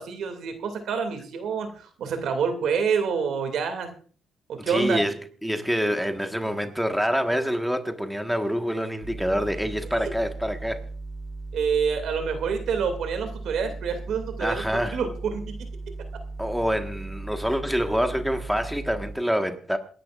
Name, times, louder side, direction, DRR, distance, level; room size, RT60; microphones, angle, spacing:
voice 1, 0.1-3.9 4.5-5.0 10.0-10.1 11.5-15.6, right 6 dB, 75° right, 2.4 m, -27 dB
voice 2, 4.6-10.8 14.4-15.0 16.4-19.8, equal, ahead, 1.4 m, -26 dB
sound 1, 9.0-19.1, right 3 dB, 45° right, 1.3 m, -37 dB
27.5 x 11.0 x 2.5 m
cardioid pair, 90°, 0 cm